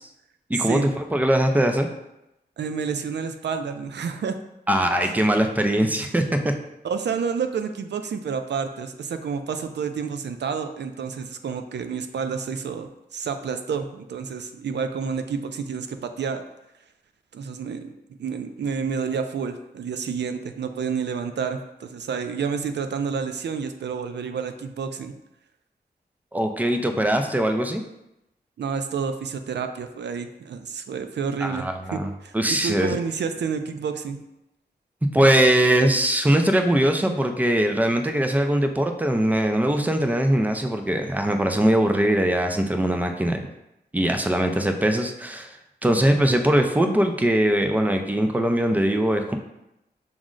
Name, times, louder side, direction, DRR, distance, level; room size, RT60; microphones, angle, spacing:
voice 1, 0.5-1.9 4.7-6.5 26.3-27.8 31.4-33.0 35.1-43.4 43.9-45.6 45.8-49.4, right 1 dB, 10° right, 5 dB, 0.4 m, -21 dB
voice 2, 2.6-4.4 6.8-16.4 17.3-17.9 18.2-25.1 28.6-31.6 31.9-34.2, right 6 dB, 90° right, 8 dB, 0.4 m, -29 dB
6.1 x 2.1 x 3.7 m, 0.88 s
wide cardioid pair, 125°, 17 cm